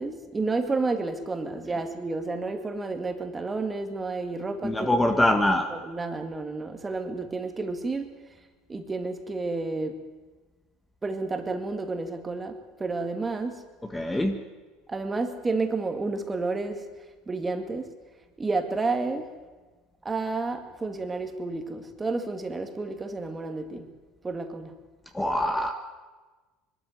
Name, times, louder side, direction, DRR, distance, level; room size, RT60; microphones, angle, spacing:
voice 1, 0.0-5.0 5.7-8.1 8.7-10.0 11.0-13.6 14.9-16.8 17.3-17.9 18.4-19.3 20.0-23.9 24.2-24.7, right 3 dB, 20° right, 6 dB, 2.1 m, -30 dB
voice 2, 4.6-5.7 13.9-14.4 25.1-25.7, left 1 dB, 10° left, 5 dB, 1.6 m, -23 dB
21.5 x 13.0 x 9.2 m, 1.3 s
supercardioid pair, 100°, 0 cm